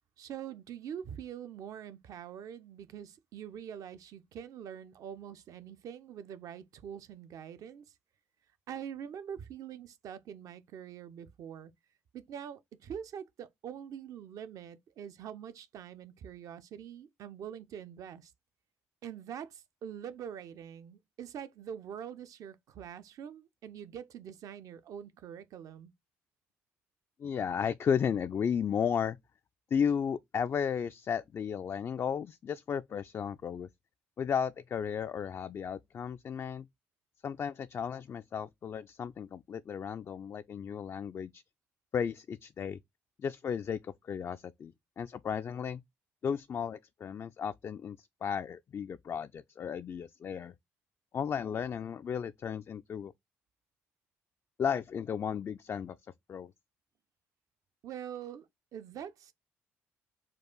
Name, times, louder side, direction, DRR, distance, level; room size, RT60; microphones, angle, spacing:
voice 1, 0.2-7.9 8.7-11.7 12.1-18.3 19.0-25.9 57.8-59.3, right 8 dB, 60° right, 0.6 m, -44 dB
voice 2, 27.2-29.2 29.7-33.7 34.2-36.7 37.2-41.4 41.9-42.8 43.2-45.8 46.2-50.5 51.1-53.1 54.6-56.0 56.3-56.5, left 7 dB, 40° left, 0.3 m, -34 dB
4.5 x 2.4 x 3.8 m
hypercardioid pair, 45°, 7 cm